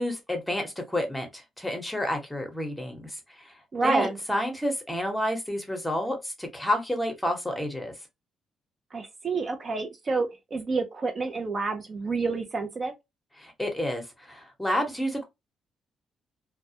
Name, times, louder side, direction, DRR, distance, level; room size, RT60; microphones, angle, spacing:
voice 1, 0.0-3.5 3.8-7.9 13.4-15.2, equal, 5° left, 0.9 m, -30 dB
voice 2, 3.7-4.1 8.9-12.9, right 4 dB, 40° right, 0.4 m, -29 dB
2.2 x 2.1 x 2.7 m
cardioid pair, 90°, 0 cm